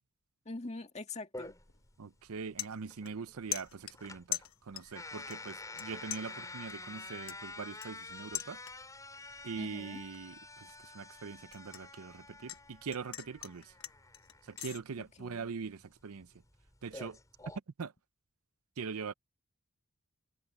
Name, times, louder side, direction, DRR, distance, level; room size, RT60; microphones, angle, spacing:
voice 1, 0.5-1.6 9.6-10.0 15.0-15.5, left 2 dB, 30° left, 2.0 m, -44 dB
sound 1, 1.3-17.6, left 2 dB, 15° left, 7.3 m, -49 dB
sound 2, 1.7-1.9 2.2-3.3 3.5-5.0 5.3-5.8 6.1-9.0 9.4-9.7 10.1-12.6 12.9-14.8, left 13 dB, 75° left, 1.0 m, -42 dB
voice 2, 2.0-8.6 9.4-10.7 10.9-13.7 14.5-16.3 16.8-17.2 17.8-17.9 18.8-19.1, right 5 dB, 80° right, 0.6 m, -42 dB
head